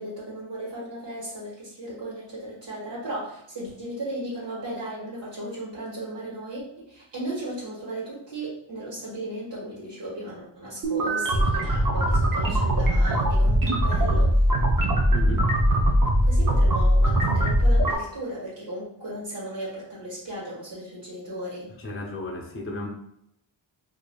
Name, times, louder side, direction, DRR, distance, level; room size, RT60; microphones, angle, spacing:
voice 1, 0.0-14.4 16.2-21.7, right 1 dB, 60° right, -7 dB, 1.5 m, -36 dB
sound 1, 10.8-18.0, right 1 dB, 45° right, 0.6 m, -21 dB
voice 2, 15.1-15.5 21.8-22.9, left 1 dB, 30° left, 0 dB, 0.6 m, -34 dB
4.7 x 2.6 x 2.2 m, 0.76 s
wide cardioid pair, 125°, 47 cm